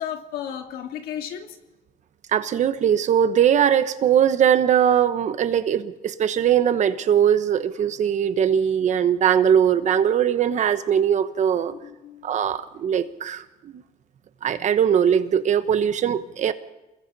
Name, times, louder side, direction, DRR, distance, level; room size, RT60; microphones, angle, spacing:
voice 1, 0.0-1.6 11.7-12.3, left 9 dB, 85° left, 5 dB, 2.1 m, -34 dB
voice 2, 2.3-11.7 12.2-13.8 14.4-16.5, right 9 dB, 50° right, 11 dB, 1.1 m, -20 dB
28.5 x 21.5 x 4.2 m, 1.0 s
cardioid pair, 125°, 15 cm